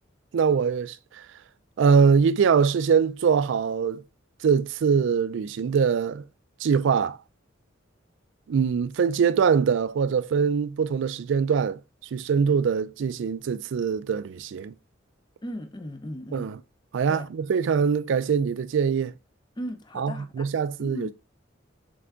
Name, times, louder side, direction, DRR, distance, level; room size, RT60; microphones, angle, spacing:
voice 1, 0.3-1.3 1.8-4.0 4.4-6.2 6.6-7.2 8.5-11.8 12.1-14.7 16.3-16.6 16.9-19.1 20.0-21.1, right 6 dB, 70° right, 0.3 m, -23 dB
voice 2, 15.4-16.5 17.1-17.3 19.6-20.5 20.8-21.1, equal, 25° left, 0.6 m, -37 dB
3.8 x 3.4 x 3.5 m
head